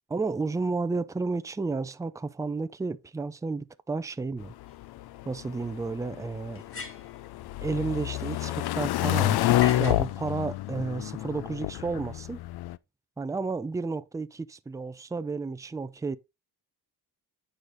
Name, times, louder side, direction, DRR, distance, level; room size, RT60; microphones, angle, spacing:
voice 1, 0.1-4.5 5.3-6.6 7.6-12.4 13.2-16.2, right 4 dB, 10° right, 0.4 m, -32 dB
sound 1, 4.4-12.8, left 15 dB, 75° left, 0.5 m, -29 dB
sound 2, 4.7-4.8 6.5-7.2 9.6-10.1, left 4 dB, 35° left, 1.6 m, -39 dB
9.6 x 5.1 x 3.9 m
cardioid pair, 135°, 39 cm